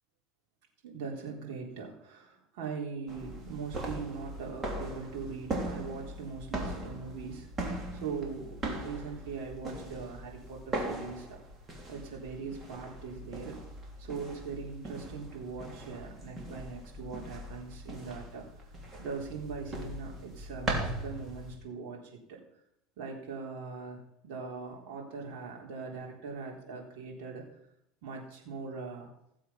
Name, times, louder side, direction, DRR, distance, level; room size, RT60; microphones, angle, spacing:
voice 1, 0.8-11.4 11.9-13.6 14.0-18.5 19.0-22.4 23.0-27.4 28.0-29.1, right 5 dB, 70° right, -1 dB, 3.8 m, -41 dB
sound 1, 3.1-21.6, right 1 dB, 25° right, 3.2 m, -40 dB
16.0 x 7.6 x 5.8 m, 0.76 s
supercardioid pair, 125°, 0 cm